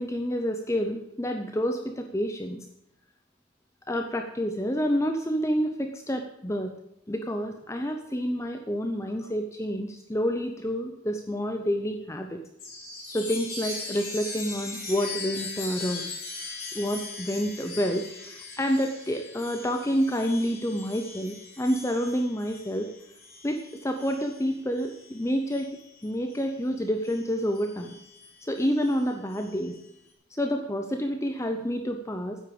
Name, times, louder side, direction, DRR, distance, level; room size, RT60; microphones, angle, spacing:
voice 1, 0.0-2.6 3.9-6.7 7.1-12.4 13.1-16.0 16.7-22.9 23.4-25.8 26.0-27.9 28.4-29.8 30.3-32.4, equal, 15° left, 5 dB, 0.7 m, -28 dB
Chime, 12.6-26.6 27.0-29.9, left 3 dB, 45° left, 4.3 m, -40 dB
10.0 x 8.2 x 8.6 m, 0.80 s
head